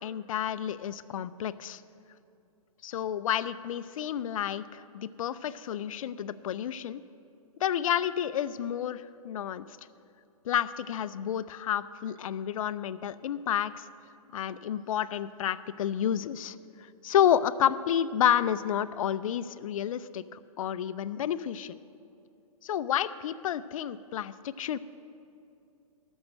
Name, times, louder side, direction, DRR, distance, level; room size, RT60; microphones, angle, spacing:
voice 1, 0.0-1.8 2.8-7.0 7.6-9.7 10.4-13.9 14.3-16.6 17.0-21.8 22.6-24.8, left 10 dB, 65° left, 14 dB, 0.5 m, -30 dB
12.5 x 6.3 x 7.6 m, 2.6 s
hypercardioid pair, 140°, 19 cm